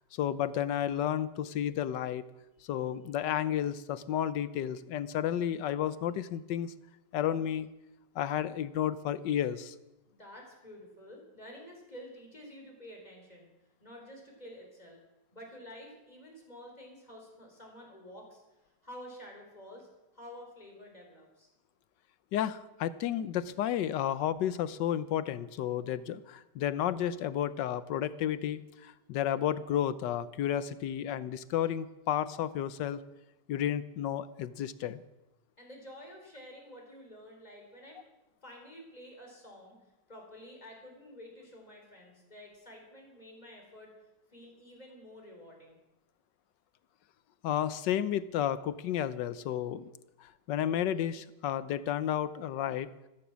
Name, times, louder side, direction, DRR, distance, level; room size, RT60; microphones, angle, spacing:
voice 1, 0.1-2.2 2.7-6.7 7.1-7.7 8.1-9.7 22.3-33.0 33.5-35.0 47.4-49.9 50.2-52.9, left 10 dB, 85° left, 15 dB, 1.4 m, -32 dB
voice 2, 10.1-13.5 13.8-15.0 15.3-18.4 18.8-19.9 20.1-21.5 35.6-38.0 38.4-39.8 40.1-43.9 44.3-45.8, equal, 20° left, 0 dB, 4.2 m, -50 dB
14.5 x 14.0 x 6.2 m, 0.97 s
omnidirectional pair, 1.9 m